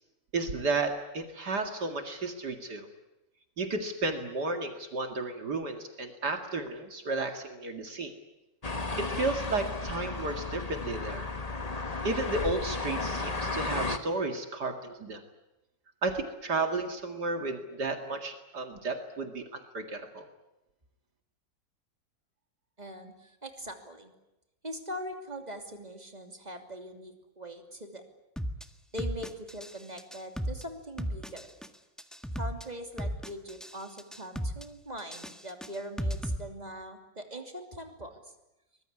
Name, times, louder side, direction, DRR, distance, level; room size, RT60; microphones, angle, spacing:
voice 1, 0.3-2.9 3.6-8.1 9.0-11.3 12.0-15.2 16.0-20.3, right 3 dB, 60° right, 5 dB, 2.7 m, -33 dB
sound 1, 8.6-14.0, left 3 dB, 20° left, 1.4 m, -34 dB
voice 2, 22.8-24.1 24.6-28.0 28.9-31.5 32.3-38.2, equal, 20° right, 5 dB, 3.0 m, -42 dB
sound 2, 28.4-28.6 29.0-29.7 30.0-30.6 31.0-31.7 32.0-32.6 33.0-33.7 34.0-34.6 35.0-36.4, equal, ahead, 1.3 m, -34 dB
24.0 x 21.0 x 9.8 m, 0.96 s
omnidirectional pair, 2.0 m